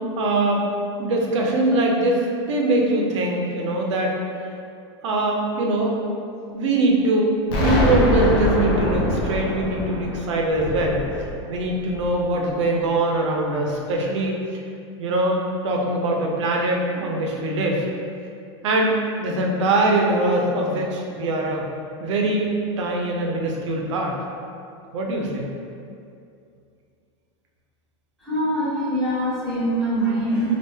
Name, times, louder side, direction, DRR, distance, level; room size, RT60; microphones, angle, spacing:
voice 1, 0.2-0.7 1.0-4.1 5.0-6.0 6.5-11.0 11.5-14.4 15.0-17.9 18.6-21.7 22.0-24.2 24.9-25.5, right 2 dB, 85° right, 0 dB, 0.6 m, -22 dB
Explosion, 7.5-12.3, left 1 dB, 40° left, 0.6 m, -24 dB
voice 2, 28.2-30.6, right 1 dB, ahead, -13 dB, 1.3 m, -23 dB
3.3 x 2.4 x 3.2 m, 2.5 s
supercardioid pair, 165°, 15 cm